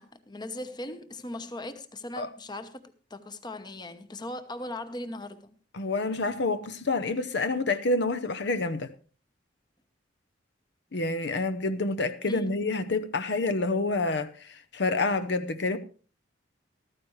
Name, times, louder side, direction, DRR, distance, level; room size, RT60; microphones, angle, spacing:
voice 1, 0.0-2.8 3.1-5.4 12.2-12.5, left 1 dB, 25° left, 0.9 m, -38 dB
voice 2, 5.7-8.9 10.9-15.8, left 3 dB, 65° left, 0.8 m, -28 dB
14.0 x 13.5 x 3.2 m
head